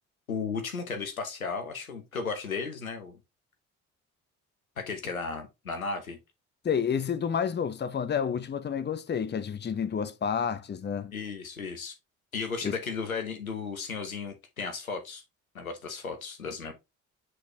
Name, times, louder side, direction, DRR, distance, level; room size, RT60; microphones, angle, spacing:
voice 1, 0.3-3.2 4.8-6.2 11.1-11.9 12.3-15.2 15.5-16.7, left 5 dB, 85° left, 0.9 m, -35 dB
voice 2, 6.6-11.1 12.6-12.8, left 7 dB, 25° left, 0.9 m, -30 dB
7.7 x 4.1 x 3.0 m
figure-of-eight pair, 45°, 41 cm